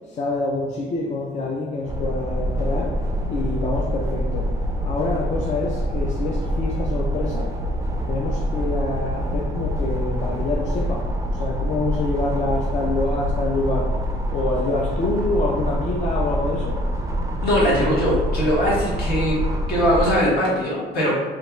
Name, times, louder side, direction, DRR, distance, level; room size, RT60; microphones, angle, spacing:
voice 1, 0.1-3.0 3.3-4.5 4.8-7.5 8.1-13.9 14.3-16.8, left 2 dB, 45° left, -2 dB, 0.4 m, -26 dB
sound 1, 1.9-20.2, equal, 20° right, 0.4 m, -25 dB
voice 2, 17.4-19.4 19.7-21.2, equal, 70° left, -5 dB, 1.4 m, -20 dB
3.2 x 2.4 x 3.1 m, 1.4 s
cardioid pair, 110°, 17 cm